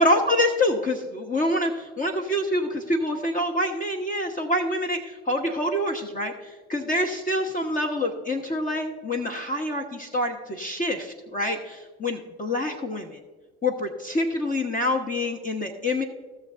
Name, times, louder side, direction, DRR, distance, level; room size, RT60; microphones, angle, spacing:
voice 1, 0.0-6.3 6.7-13.2 13.6-16.0, left 1 dB, 25° left, 3 dB, 1.2 m, -26 dB
17.0 x 6.8 x 2.5 m, 1.4 s
hypercardioid pair, 60°, 33 cm